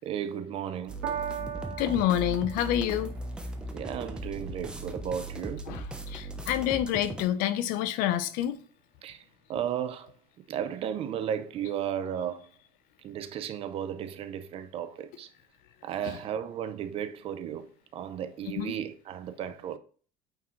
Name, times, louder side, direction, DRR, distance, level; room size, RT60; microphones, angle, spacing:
voice 1, 0.0-1.0 3.7-5.7 6.9-7.1 9.0-9.2 9.5-10.1 10.5-12.5 13.0-15.3 15.8-19.8, right 9 dB, 40° right, 0.6 m, -34 dB
sound 1, 0.9-7.2, right 1 dB, 5° right, 0.8 m, -38 dB
Piano, 1.0-7.6 8.4-8.5, right 9 dB, 85° right, 1.7 m, -42 dB
voice 2, 1.8-3.1 5.7-5.8 6.1-8.6 18.6-18.7, left 11 dB, 70° left, 0.8 m, -27 dB
8.8 x 4.8 x 3.2 m
cardioid pair, 165°, 15 cm